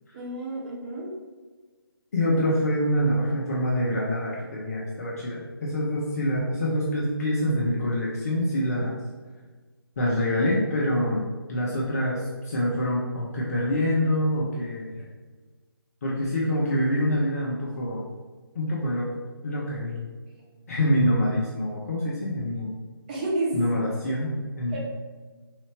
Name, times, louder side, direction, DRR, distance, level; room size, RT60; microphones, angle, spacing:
voice 1, 0.1-1.1 23.1-23.5 24.7-24.8, right 2 dB, 20° right, -4 dB, 0.6 m, -30 dB
voice 2, 2.1-9.0 10.0-11.2 11.5-14.9 16.0-18.1 18.5-19.1 19.4-20.1 20.7-22.8 23.5-24.3 24.6-24.8, equal, 40° left, -5 dB, 0.8 m, -25 dB
3.9 x 3.1 x 3.2 m, 1.3 s
figure-of-eight pair, 150°, 13 cm